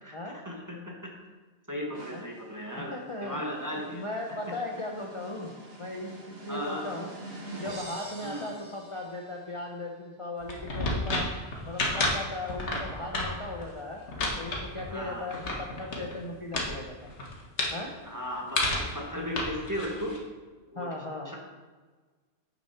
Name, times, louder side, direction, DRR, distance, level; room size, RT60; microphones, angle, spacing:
voice 1, 0.4-1.0 1.7-4.0 6.5-6.9 8.2-8.5 14.9-15.3 18.0-20.1 20.7-20.9 21.2-21.4, equal, 15° right, -1 dB, 1.3 m, -36 dB
sound 1, 1.9-9.5, right 2 dB, 85° right, 2.1 m, -46 dB
voice 2, 2.8-3.4 3.9-7.1 7.5-11.3 11.6-14.0 14.4-17.1 17.7-17.9 20.7-21.3, left 2 dB, 30° left, -1 dB, 0.7 m, -37 dB
sound 2, 10.4-16.2 16.5-16.7 17.0-17.8 18.6-19.0 19.4-20.2, left 2 dB, 80° left, 1.7 m, -31 dB
6.9 x 6.1 x 5.8 m, 1.4 s
omnidirectional pair, 1.2 m